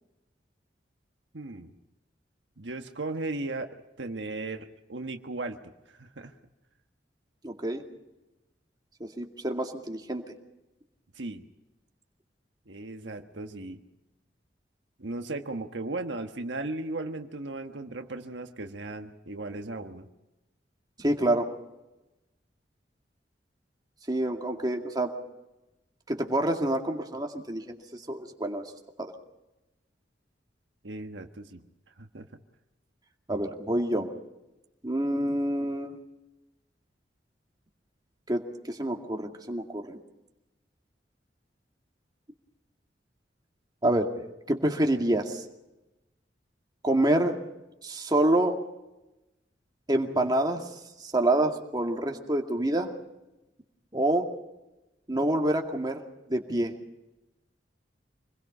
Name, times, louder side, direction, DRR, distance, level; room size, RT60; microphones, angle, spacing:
voice 1, 1.3-1.8 2.6-5.6 5.9-6.3 11.1-11.4 12.7-13.8 15.0-20.1 30.8-31.6 32.0-32.3, right 2 dB, 85° right, 6 dB, 1.4 m, -36 dB
voice 2, 7.4-7.8 9.0-10.3 21.0-21.5 24.1-25.1 26.1-28.6 29.0-29.1 33.3-34.1 34.8-36.0 38.3-40.0 43.8-44.1 44.5-45.4 46.8-47.4 47.8-48.6 49.9-50.6 51.0-52.9 53.9-54.3 55.1-56.0 56.3-56.7, right 1 dB, 25° right, 2 dB, 2.2 m, -27 dB
26.5 x 21.5 x 5.5 m, 0.99 s
head